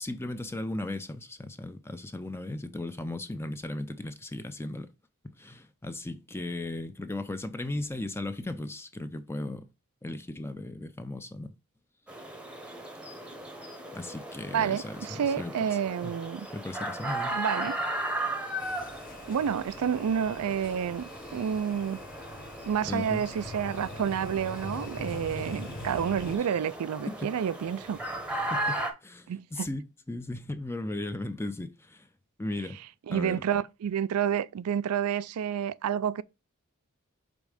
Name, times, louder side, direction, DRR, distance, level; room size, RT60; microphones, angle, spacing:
voice 1, 0.0-4.9 5.2-9.7 10.0-11.5 13.9-15.5 16.0-16.2 16.5-17.4 22.8-23.3 27.1-27.3 28.5-32.1 32.4-32.8 33.1-33.4, left 2 dB, 10° left, 0.5 m, -36 dB
sound 1, 12.1-28.9, right 1 dB, 5° right, 0.9 m, -37 dB
voice 2, 14.5-16.5 17.3-17.8 19.3-22.0 22.6-28.0 29.3-29.7 33.1-36.2, right 8 dB, 85° right, 0.4 m, -29 dB
sound 2, 18.6-26.4, left 2 dB, 40° left, 0.8 m, -43 dB
5.3 x 3.6 x 4.9 m
head